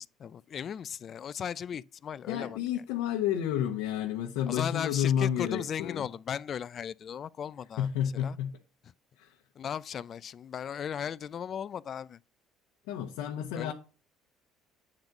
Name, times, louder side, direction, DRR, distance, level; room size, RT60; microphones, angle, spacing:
voice 1, 0.0-2.9 4.5-8.4 9.6-12.2 13.5-13.7, left 8 dB, 50° left, 0.4 m, -37 dB
voice 2, 2.3-6.1 7.8-8.6 9.2-9.4 12.9-13.7, left 10 dB, 85° left, 1.0 m, -30 dB
8.8 x 4.0 x 5.9 m
supercardioid pair, 85°, 0 cm